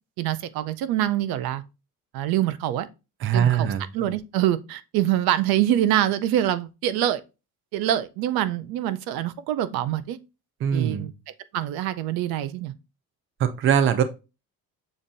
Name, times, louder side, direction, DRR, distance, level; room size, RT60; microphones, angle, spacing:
voice 1, 0.2-1.6 2.1-2.9 3.3-7.2 7.7-10.2 10.7-11.1 11.5-12.7, right 12 dB, 85° right, 0.5 m, -25 dB
voice 2, 3.2-3.8 10.6-11.1 13.4-14.0, right 8 dB, 35° right, 0.4 m, -21 dB
7.0 x 2.6 x 2.5 m
cardioid pair, 175°, 35 cm